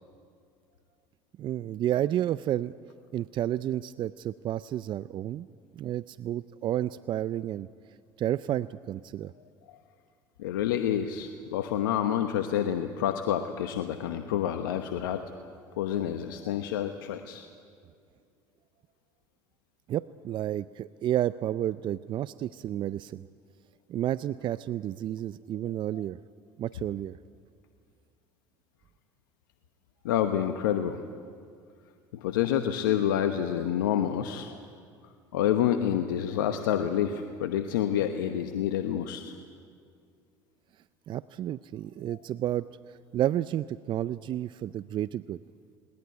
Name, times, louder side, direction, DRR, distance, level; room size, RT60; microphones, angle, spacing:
voice 1, 1.4-2.7 3.1-5.5 5.7-7.7 8.2-9.3 19.9-23.2 23.9-26.2 26.6-27.2 41.1-45.4, right 12 dB, 45° right, 16 dB, 0.5 m, -31 dB
voice 2, 10.4-15.2 15.8-17.5 30.0-31.0 32.1-34.6 35.3-39.3, left 10 dB, 85° left, 7 dB, 1.0 m, -28 dB
20.5 x 20.0 x 9.5 m, 2.2 s
hypercardioid pair, 75°, 11 cm